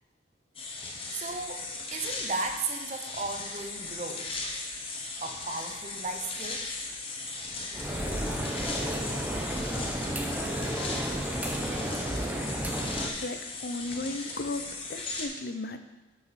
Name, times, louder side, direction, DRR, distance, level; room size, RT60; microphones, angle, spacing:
sound 1, 0.5-15.3, left 3 dB, 30° left, 1.0 m, -37 dB
voice 1, 1.1-1.7 1.9-4.4 5.2-6.7, right 3 dB, 40° right, 6 dB, 0.7 m, -35 dB
sound 2, 7.7-13.1, right 1 dB, 10° right, 0.7 m, -32 dB
voice 2, 13.2-14.6 14.9-15.8, left 2 dB, 60° left, 9 dB, 0.6 m, -35 dB
9.0 x 5.8 x 4.2 m, 1.1 s
head